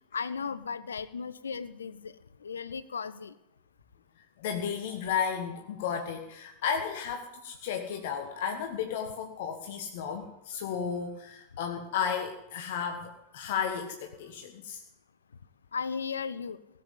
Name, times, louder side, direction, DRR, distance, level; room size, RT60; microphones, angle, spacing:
voice 1, 0.1-2.1 2.4-3.3 15.7-16.6, left 5 dB, 70° left, 15 dB, 0.8 m, -35 dB
voice 2, 4.4-14.8, left 7 dB, 55° left, 4 dB, 1.4 m, -33 dB
17.5 x 7.8 x 9.9 m, 0.86 s
figure-of-eight pair, 90°, 0 cm